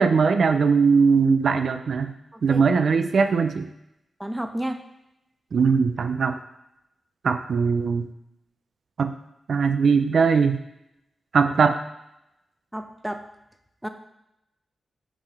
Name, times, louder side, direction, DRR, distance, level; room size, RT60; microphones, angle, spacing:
voice 1, 0.0-2.1 2.4-3.7 5.5-6.4 7.2-8.1 9.0-9.1 9.5-10.6 11.3-11.8, right 5 dB, 70° right, 8 dB, 0.4 m, -20 dB
voice 2, 2.3-2.6 4.2-4.8 12.7-13.2 13.8-13.9, right 1 dB, 5° right, 7 dB, 0.5 m, -31 dB
4.9 x 3.8 x 5.4 m, 0.85 s
cardioid pair, 85°, 0 cm